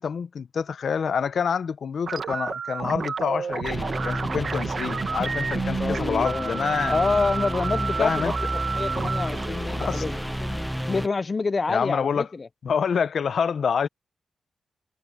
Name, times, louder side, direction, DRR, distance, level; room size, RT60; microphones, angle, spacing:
voice 1, 0.0-7.0 8.0-8.3 9.8-10.0 11.7-12.3 12.6-13.9, left 6 dB, 65° left, 0.8 m, -27 dB
sound 1, 2.1-11.0, right 5 dB, 60° right, 1.3 m, -31 dB
sound 2, 3.6-11.1, equal, ahead, 0.8 m, -31 dB
voice 2, 5.8-8.4 8.7-12.5, left 4 dB, 35° left, 0.5 m, -28 dB
wide cardioid pair, 120°, 0 cm